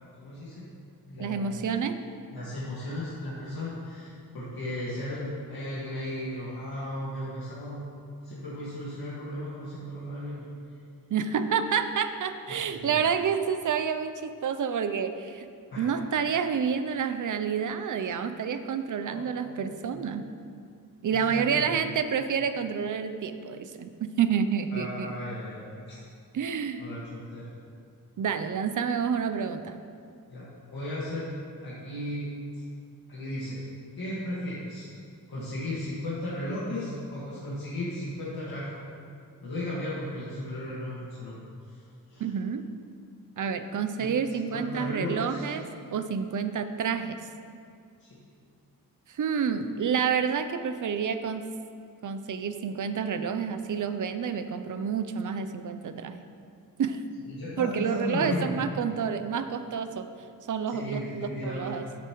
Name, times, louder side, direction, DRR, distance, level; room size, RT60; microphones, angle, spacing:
voice 1, 0.2-0.7 1.1-1.5 2.3-7.9 8.2-10.5 12.5-13.1 15.7-15.8 19.0-20.0 21.0-21.8 24.7-25.6 25.9-26.0 26.8-27.5 30.3-31.3 31.6-32.3 32.5-32.6 33.1-33.6 34.0-34.9 35.3-38.7 39.4-41.3 41.6-41.8 42.1-42.3 44.0-44.1 44.5-45.5 48.0-48.2 57.3-58.6 60.7-61.7, left 1 dB, 85° left, -9 dB, 1.8 m, -35 dB
voice 2, 1.2-2.0 11.1-15.5 15.8-20.3 21.0-25.1 26.3-26.8 28.2-29.8 42.2-42.6 43.4-45.6 45.9-47.2 49.1-51.4 52.0-56.2 56.8-57.0 57.6-60.1 60.5-61.9, right 7 dB, 60° right, 9 dB, 0.5 m, -29 dB
10.0 x 8.4 x 3.1 m, 2.3 s
wide cardioid pair, 160°, 36 cm